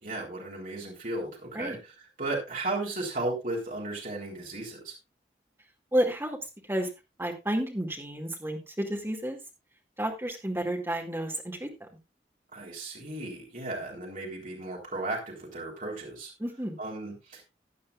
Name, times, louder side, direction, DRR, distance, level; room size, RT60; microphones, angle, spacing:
voice 1, 0.0-1.9 2.2-4.9 12.5-16.3 16.8-17.4, right 2 dB, 50° right, -2 dB, 3.7 m, -35 dB
voice 2, 5.9-6.4 6.7-6.9 7.2-9.4 10.0-11.9 16.4-16.8, right 1 dB, 15° right, 1 dB, 2.2 m, -31 dB
15.5 x 9.5 x 2.4 m, 0.25 s
head